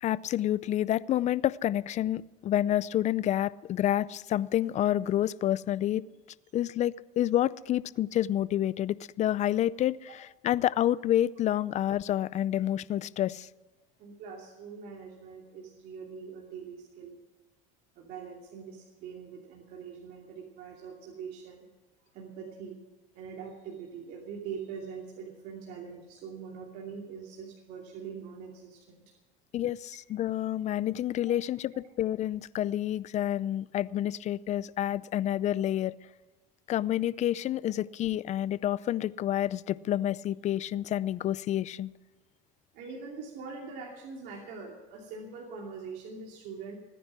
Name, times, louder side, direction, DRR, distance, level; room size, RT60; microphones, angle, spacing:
voice 1, 0.0-6.0 6.5-10.1 10.4-13.5 29.5-35.9 36.7-41.9, left 12 dB, 40° left, 20 dB, 0.5 m, -28 dB
voice 2, 14.0-17.2 17.9-21.7 22.1-22.8 23.1-29.1 31.3-31.4 42.7-46.8, right 5 dB, 65° right, -1 dB, 2.7 m, -43 dB
20.5 x 10.0 x 6.1 m, 1.2 s
supercardioid pair, 100°, 17 cm